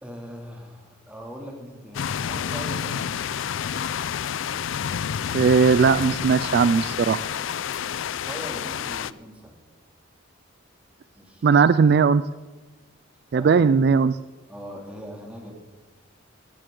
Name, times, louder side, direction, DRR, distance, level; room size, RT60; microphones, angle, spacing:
voice 1, 0.0-3.1 7.9-9.5 11.2-11.6 13.3-13.7 14.5-15.5, equal, 5° right, 0 dB, 2.6 m, -40 dB
sound 1, 1.9-9.1, left 8 dB, 70° left, 0.4 m, -29 dB
voice 2, 5.3-7.3 11.4-12.2 13.3-14.2, right 5 dB, 50° right, 15 dB, 0.3 m, -18 dB
15.5 x 13.5 x 3.8 m, 1.2 s
head